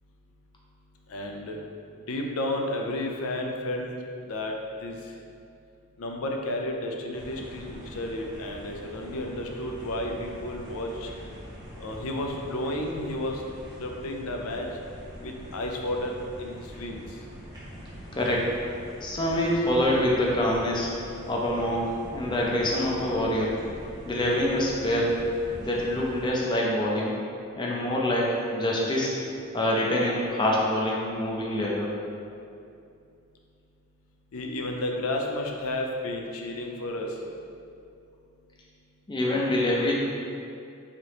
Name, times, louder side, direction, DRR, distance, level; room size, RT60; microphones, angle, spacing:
voice 1, 1.1-1.6 2.1-3.9 4.3-4.5 4.8-5.0 6.0-11.1 11.8-13.4 13.8-14.7 15.2-17.0 34.3-37.2, left 1 dB, 80° left, 1 dB, 0.5 m, -32 dB
sound 1, 7.1-26.3, equal, 15° right, 0.6 m, -43 dB
voice 2, 18.1-18.6 19.0-20.9 21.3-23.5 24.1-25.2 25.6-27.1 27.6-29.1 29.5-31.9 39.1-39.9, left 1 dB, 20° left, -3 dB, 0.5 m, -25 dB
3.7 x 3.4 x 2.9 m, 2.5 s
head